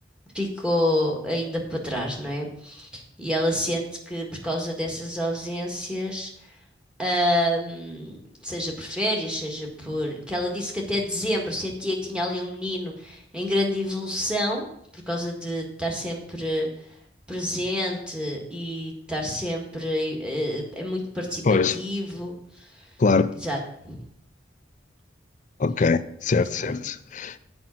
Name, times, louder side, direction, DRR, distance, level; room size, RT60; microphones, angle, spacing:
voice 1, 0.3-6.3 7.0-14.7 14.9-16.7 17.3-22.3 23.4-24.0 26.4-26.7, equal, 5° right, 1.7 m, -28 dB
voice 2, 21.4-21.8 23.0-23.4 25.6-27.4, left 4 dB, 40° left, 0.4 m, -22 dB
7.7 x 5.3 x 7.3 m
head